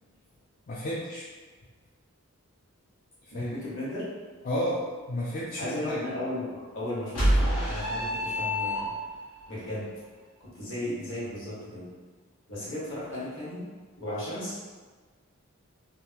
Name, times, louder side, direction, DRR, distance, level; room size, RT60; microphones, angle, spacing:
voice 1, 0.7-1.3 3.3-3.5 4.4-6.0, equal, 40° left, -6 dB, 0.3 m, -32 dB
voice 2, 3.3-4.1 5.6-8.9 9.5-9.9 10.4-11.9 12.5-13.6 14.0-14.6, left 1 dB, 60° left, -8 dB, 1.2 m, -35 dB
sound 1, 7.1-9.2, equal, 80° left, 1.2 m, -26 dB
3.5 x 2.1 x 2.8 m, 1.4 s
head